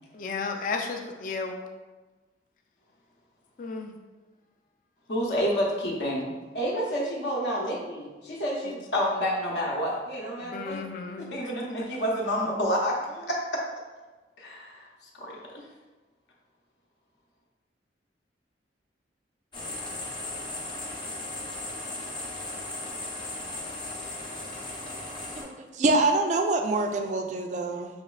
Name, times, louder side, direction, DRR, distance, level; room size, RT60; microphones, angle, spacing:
voice 1, 0.1-1.6 3.6-4.0 8.7-8.8 10.4-11.3, left 4 dB, 45° left, 4 dB, 0.4 m, -33 dB
voice 2, 5.1-10.8 11.2-13.4 14.4-14.9 15.2-15.3, equal, 70° left, -3 dB, 0.7 m, -29 dB
sound 1, 19.5-25.4, left 2 dB, 25° left, 0.8 m, -36 dB
voice 3, 25.4-27.9, right 2 dB, 40° right, 5 dB, 0.3 m, -25 dB
5.0 x 2.9 x 2.4 m, 1.2 s
head